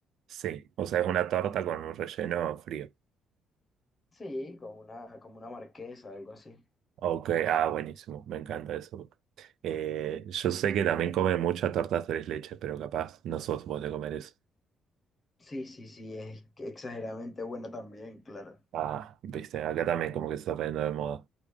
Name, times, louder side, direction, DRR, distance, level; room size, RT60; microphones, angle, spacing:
voice 1, 0.3-2.9 7.0-9.1 9.4-14.3 18.7-21.2, right 10 dB, 65° right, 0.3 m, -31 dB
voice 2, 4.1-6.6 15.4-18.6, left 2 dB, 20° left, 0.8 m, -41 dB
3.2 x 2.3 x 3.4 m
cardioid pair, 165°, 0 cm